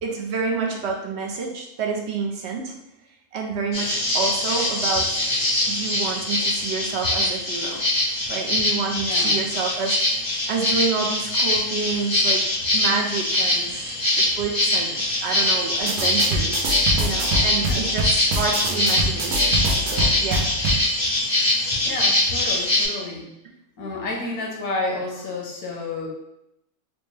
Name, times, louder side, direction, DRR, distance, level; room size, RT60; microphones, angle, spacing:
voice 1, 0.0-2.7 3.3-5.2 5.7-7.9 8.3-13.9 14.2-20.5, right 4 dB, 65° right, 1 dB, 0.7 m, -29 dB
sound 1, 3.7-22.9, left 1 dB, 65° left, 1.6 m, -23 dB
voice 2, 8.9-9.4 17.6-17.9 21.8-23.3 23.8-26.1, left 2 dB, 90° left, -1 dB, 1.3 m, -30 dB
sound 2, 15.8-20.8, right 1 dB, 85° right, 1.2 m, -25 dB
4.2 x 2.1 x 3.2 m, 0.83 s
omnidirectional pair, 1.5 m